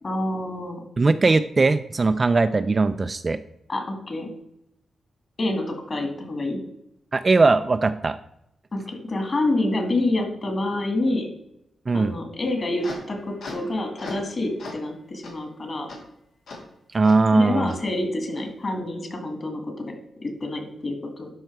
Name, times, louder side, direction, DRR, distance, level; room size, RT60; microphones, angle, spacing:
voice 1, 0.0-0.8 3.7-4.3 5.4-6.6 8.7-11.3 11.9-15.9 17.3-19.8 20.2-21.3, left 2 dB, 35° left, 4 dB, 2.2 m, -27 dB
voice 2, 1.0-3.4 7.1-8.2 11.9-12.1 16.9-17.7, right 3 dB, 25° right, 10 dB, 0.3 m, -20 dB
sound 1, 12.4-14.3 14.6-14.9 15.2-15.3 15.9-16.0 16.5-16.6 17.0-17.2 17.7-17.8 18.3-18.4, left 3 dB, 90° left, 3.0 m, -39 dB
12.0 x 5.6 x 4.7 m, 0.80 s
wide cardioid pair, 160°, 0 cm